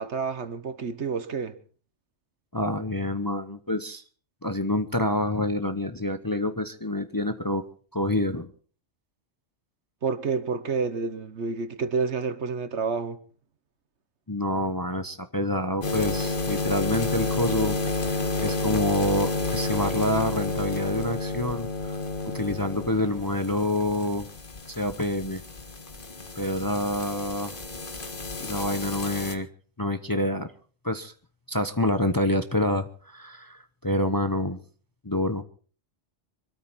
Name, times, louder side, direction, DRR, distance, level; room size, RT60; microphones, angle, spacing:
voice 1, 0.0-1.6 10.0-13.2, right 5 dB, 65° right, 1.4 m, -29 dB
voice 2, 2.5-4.0 4.4-7.6 7.9-8.5 14.3-17.8 18.1-22.0 22.2-24.3 24.8-25.4 26.3-27.5 28.4-29.5 29.8-30.5 30.8-31.1 31.5-34.6 35.0-35.4, left 1 dB, 20° left, 0.8 m, -27 dB
sound 1, 15.8-29.4, left 3 dB, 45° left, 1.8 m, -31 dB
24.5 x 13.5 x 4.2 m
omnidirectional pair, 1.3 m